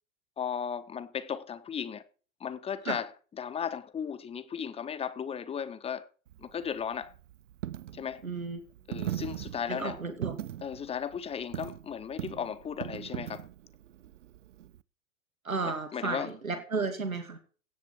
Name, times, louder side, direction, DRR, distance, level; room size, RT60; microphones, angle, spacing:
voice 1, 0.4-2.0 2.4-3.1 3.4-6.1 6.4-7.1 7.9-8.2 8.9-10.0 10.6-13.5 15.6-16.3, left 7 dB, 15° left, 1.2 m, -35 dB
Coin (dropping), 6.3-14.8, right 12 dB, 60° right, 0.8 m, -40 dB
voice 2, 8.2-8.6 9.7-10.4 15.4-17.4, right 4 dB, 80° right, 2.6 m, -33 dB
16.5 x 10.5 x 4.6 m
figure-of-eight pair, 95°, 41 cm